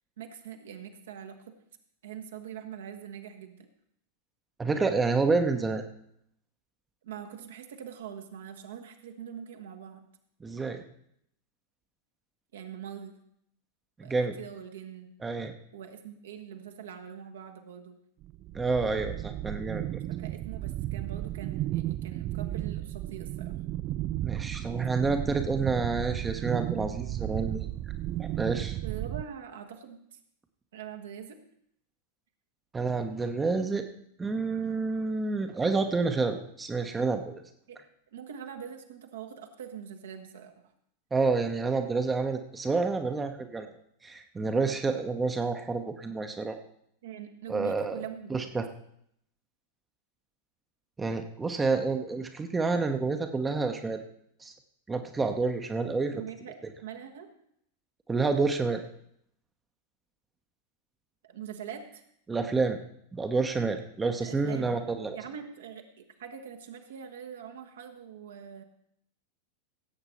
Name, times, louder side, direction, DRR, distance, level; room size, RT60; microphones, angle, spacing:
voice 1, 0.2-1.4 2.0-3.7 7.0-10.1 12.5-13.2 14.0-15.1 15.7-18.0 20.1-23.5 28.8-30.2 30.7-31.4 37.7-37.8 38.1-40.5 47.0-48.5 56.1-57.3 61.2-62.0 64.2-64.8 65.1-68.6, right 8 dB, 60° right, 5 dB, 1.3 m, -43 dB
voice 2, 4.6-5.8 10.4-10.8 14.0-14.4 15.2-15.5 18.5-19.8 24.2-27.7 28.2-28.8 32.7-33.9 34.2-37.4 41.1-43.7 44.0-46.6 47.5-48.0 48.3-48.7 51.0-54.0 54.4-54.5 54.9-56.2 58.1-58.8 62.3-62.8 63.1-65.2, right 4 dB, 15° right, 6 dB, 0.9 m, -29 dB
sound 1, 18.2-29.2, right 14 dB, 35° right, 0.4 m, -34 dB
16.5 x 8.0 x 4.3 m, 0.72 s
figure-of-eight pair, 90°, 0 cm